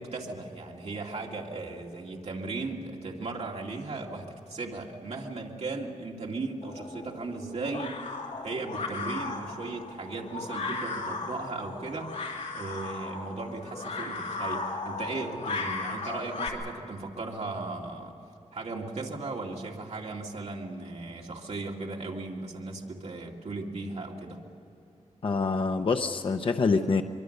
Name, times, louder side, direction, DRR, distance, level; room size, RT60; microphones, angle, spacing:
voice 1, 0.0-8.0 8.4-12.1 12.5-18.2 18.5-24.4, right 3 dB, 60° right, -1 dB, 2.5 m, -36 dB
sound 1, 6.6-16.5, left 3 dB, 65° left, 3.1 m, -36 dB
voice 2, 25.2-27.0, left 4 dB, 45° left, 6 dB, 0.7 m, -26 dB
24.5 x 23.5 x 6.7 m, 2.8 s
wide cardioid pair, 175°, 12 cm